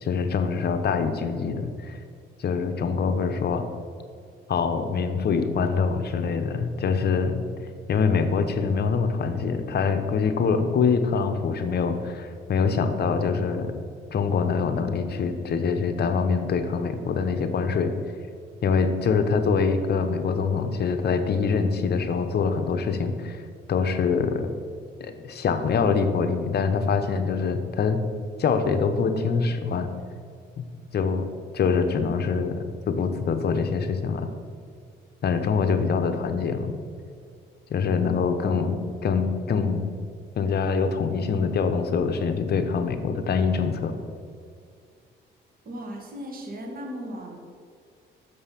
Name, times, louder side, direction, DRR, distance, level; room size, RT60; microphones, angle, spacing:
voice 1, 0.0-2.0 2.4-3.6 4.5-7.4 7.9-13.7 14.1-17.9 18.6-23.4 23.7-24.5 25.0-28.0 28.4-29.9 30.6-30.7 30.9-31.2 31.5-34.3 35.2-36.7 37.7-39.9 40.4-43.9, left 5 dB, 55° left, 8 dB, 0.8 m, -24 dB
voice 2, 45.7-47.4, equal, 45° right, 1 dB, 1.7 m, -36 dB
6.8 x 5.5 x 5.7 m, 2.2 s
cardioid pair, 90°, 20 cm